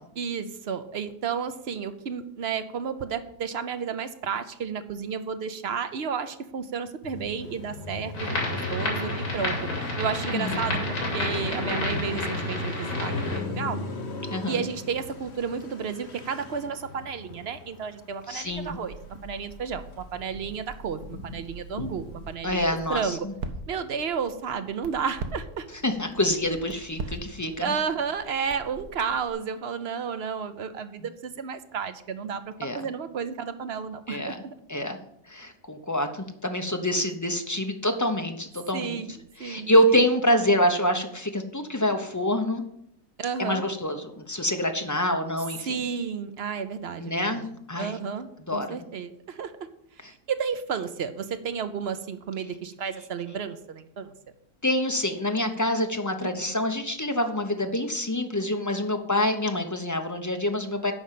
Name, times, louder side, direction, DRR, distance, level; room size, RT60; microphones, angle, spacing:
voice 1, 0.2-8.1 8.5-9.6 9.8-13.8 14.5-18.9 19.2-23.3 23.7-25.7 27.6-34.5 38.7-39.1 39.4-40.0 43.2-43.6 45.6-47.4 47.8-49.5 50.0-54.1 56.2-56.5, right 6 dB, 55° right, 10 dB, 0.9 m, -32 dB
Car passing by, 7.0-19.5 19.8-22.3, left 3 dB, 50° left, 1.4 m, -38 dB
sound 1, 8.1-13.4, left 1 dB, 85° left, 3.4 m, -30 dB
voice 2, 10.3-10.7 14.3-14.6 18.3-18.8 22.4-23.3 25.8-27.8 32.6-32.9 34.1-34.4 34.7-35.0 35.3-39.0 39.4-42.6 43.4-45.8 47.0-47.9 48.5-48.8 54.6-60.9, left 1 dB, 20° left, 5 dB, 0.6 m, -26 dB
Crackle, 18.4-29.3, right 3 dB, 85° right, 1.5 m, -42 dB
9.4 x 5.4 x 7.5 m, 0.75 s
omnidirectional pair, 1.6 m